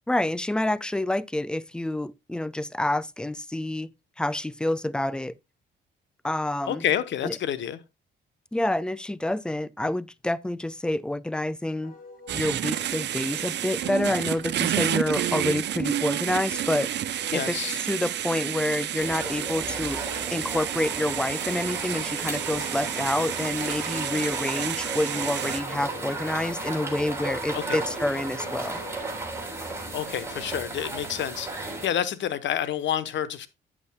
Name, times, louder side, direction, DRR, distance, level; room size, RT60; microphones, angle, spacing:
voice 1, 0.1-3.9 4.2-5.3 6.2-6.8 7.2-7.3 8.5-11.9 12.3-16.9 17.3-20.0 20.3-28.8, left 1 dB, 5° left, 0.4 m, -28 dB
voice 2, 6.7-7.8 17.3-17.8 27.5-27.8 29.9-33.5, left 10 dB, 65° left, 0.9 m, -29 dB
Wind instrument woodwind instrument, 11.8-29.1, left 3 dB, 45° left, 3.1 m, -47 dB
sound 1, 12.3-25.6, right 11 dB, 60° right, 0.6 m, -30 dB
sound 2, 19.0-31.9, right 2 dB, 10° right, 3.8 m, -35 dB
9.6 x 8.4 x 2.2 m
cardioid pair, 90°, 20 cm